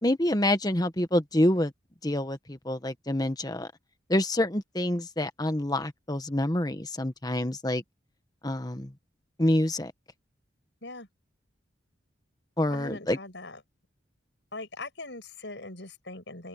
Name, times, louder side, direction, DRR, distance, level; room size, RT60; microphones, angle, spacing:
voice 1, 0.0-1.7 2.0-3.7 4.1-7.8 8.4-8.9 9.4-9.9 12.6-13.2, left 1 dB, 20° left, 1.3 m, -27 dB
voice 2, 12.7-13.6 14.5-16.5, left 2 dB, 70° left, 5.7 m, -41 dB
open air
head